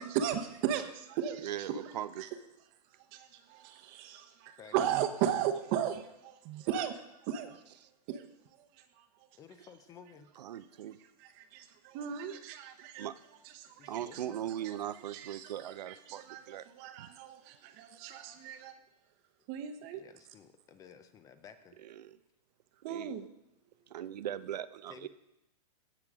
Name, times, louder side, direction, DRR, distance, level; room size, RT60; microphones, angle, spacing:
voice 1, 0.0-2.3 3.1-7.6 8.1-8.3 8.6-9.0 11.0-13.1 13.4-18.7 19.5-20.0 22.8-23.3, right 9 dB, 35° right, 0.9 m, -37 dB
voice 2, 1.4-2.3 10.4-11.0 13.0-13.2 13.9-16.7 17.0-17.1 21.8-22.2 22.9-23.1 23.9-25.1, right 11 dB, 80° right, 0.6 m, -39 dB
voice 3, 9.4-10.3 13.8-14.4 19.9-21.8 24.0-24.1 24.9-25.1, left 7 dB, 15° left, 0.5 m, -54 dB
16.5 x 6.7 x 3.6 m
hypercardioid pair, 145°, 21 cm